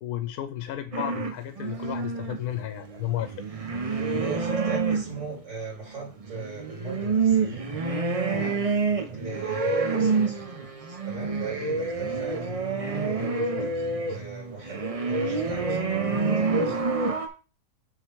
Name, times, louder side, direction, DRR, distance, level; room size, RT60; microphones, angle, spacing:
voice 1, 0.0-3.4, left 12 dB, 80° left, 1.2 m, -33 dB
sound 1, 0.9-5.4 6.1-17.3, right 4 dB, 40° right, 0.5 m, -27 dB
voice 2, 4.2-7.7 8.3-8.7 9.1-10.5 10.8-16.8, right 3 dB, 60° right, 3.6 m, -39 dB
6.6 x 3.9 x 4.6 m
omnidirectional pair, 1.6 m